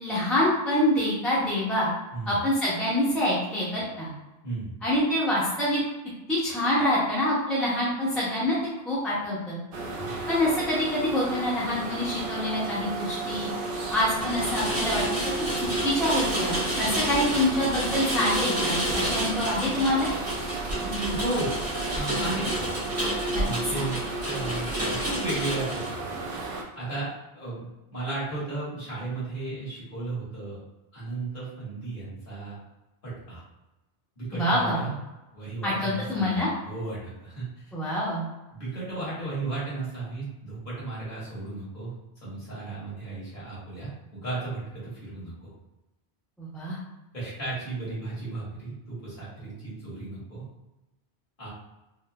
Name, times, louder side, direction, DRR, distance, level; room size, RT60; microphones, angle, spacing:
voice 1, 0.0-1.9 2.3-4.1 4.8-5.8 6.3-8.6 8.9-9.6 10.3-13.5 13.9-15.0 15.6-20.1 23.3-23.4 34.3-34.9 35.6-36.5 37.7-38.3 46.4-46.8, left 1 dB, ahead, -9 dB, 0.7 m, -26 dB
sound 1, 9.7-26.6, right 2 dB, 60° right, 0.7 m, -33 dB
voice 2, 10.0-10.3 20.8-21.5 21.9-22.7 23.4-26.1 26.7-30.6 30.9-32.6 33.0-33.4 34.2-34.9 35.3-37.5 38.5-41.9 42.2-45.5 47.1-50.4 51.4-51.5, right 2 dB, 50° left, -9 dB, 1.7 m, -34 dB
Rain, 13.6-25.9, right 1 dB, 45° right, 1.4 m, -30 dB
3.8 x 2.6 x 2.2 m, 1.0 s
omnidirectional pair, 1.1 m